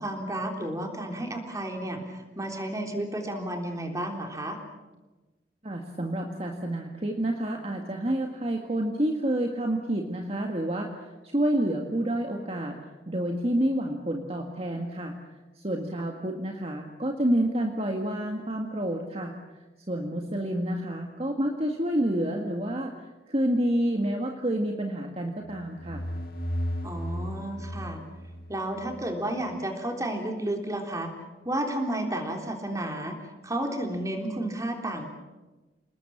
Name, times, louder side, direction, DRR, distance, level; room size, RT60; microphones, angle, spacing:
voice 1, 0.0-4.6 26.8-28.0 28.5-31.1 31.5-35.1, right 1 dB, 20° right, 3 dB, 3.6 m, -32 dB
voice 2, 5.6-10.9 11.2-12.8 13.1-15.2 15.6-19.4 19.9-22.9 23.3-26.1, right 1 dB, 35° right, 2 dB, 1.9 m, -28 dB
sound 1, 25.5-29.1, equal, 55° left, 2.6 m, -35 dB
29.0 x 20.0 x 7.4 m, 1.2 s
head